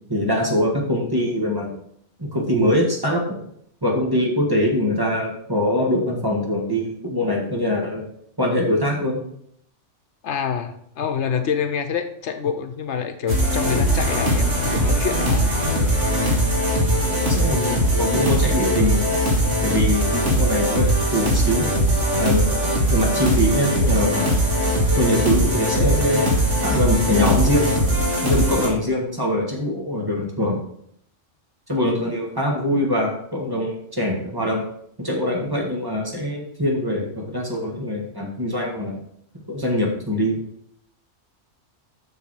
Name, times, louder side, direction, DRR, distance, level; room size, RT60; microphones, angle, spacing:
voice 1, 0.1-1.8 2.2-3.4 3.8-8.0 8.4-9.2 17.2-19.1 19.6-21.7 22.2-24.3 25.0-27.7 28.2-30.6 31.7-34.6 35.0-39.0 39.5-40.4, left 1 dB, 20° right, -1 dB, 1.7 m, -23 dB
voice 2, 10.2-15.5, left 7 dB, 75° left, 7 dB, 1.1 m, -26 dB
sound 1, 13.3-28.7, equal, 80° right, 2.1 m, -20 dB
7.0 x 6.6 x 4.8 m, 0.70 s
omnidirectional pair, 1.2 m